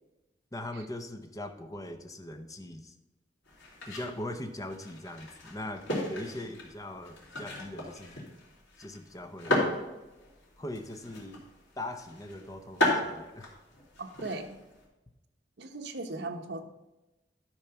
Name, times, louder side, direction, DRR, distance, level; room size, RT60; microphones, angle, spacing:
voice 1, 0.5-2.9 3.9-8.2 8.8-9.7 10.6-11.4 11.8-13.5, left 1 dB, 20° left, 7 dB, 0.8 m, -40 dB
sound 1, 3.4-14.8, left 1 dB, 85° left, 3.2 m, -35 dB
voice 2, 14.0-14.6 15.6-16.6, right 2 dB, 70° right, 4 dB, 0.9 m, -38 dB
12.0 x 4.9 x 5.8 m, 1.0 s
head